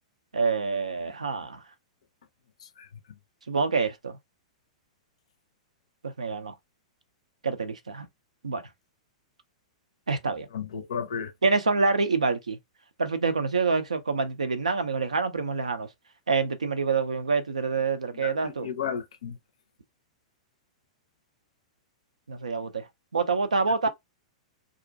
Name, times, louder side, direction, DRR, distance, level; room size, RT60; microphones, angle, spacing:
voice 1, 0.3-1.6 3.5-4.2 6.0-6.5 7.4-8.1 8.4-8.6 10.1-10.5 11.4-12.6 13.0-15.9 16.3-18.7 22.3-23.9, right 4 dB, 80° right, 0.4 m, -26 dB
voice 2, 10.5-11.3 18.2-19.4, left 7 dB, 65° left, 0.4 m, -33 dB
2.4 x 2.1 x 2.5 m
figure-of-eight pair, 100°, 4 cm